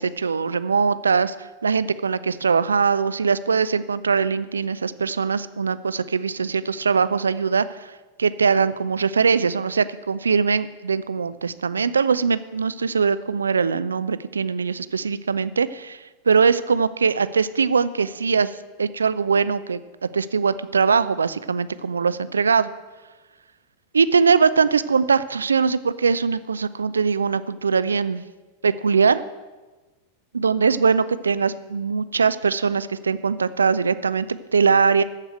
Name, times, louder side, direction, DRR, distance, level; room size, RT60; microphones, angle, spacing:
voice 1, 0.0-7.9 8.2-18.5 18.8-22.7 23.9-28.2 28.6-29.2 30.3-35.0, right 5 dB, 75° right, 15 dB, 0.4 m, -21 dB
14.0 x 4.8 x 7.9 m, 1.2 s
figure-of-eight pair, 90°, 0 cm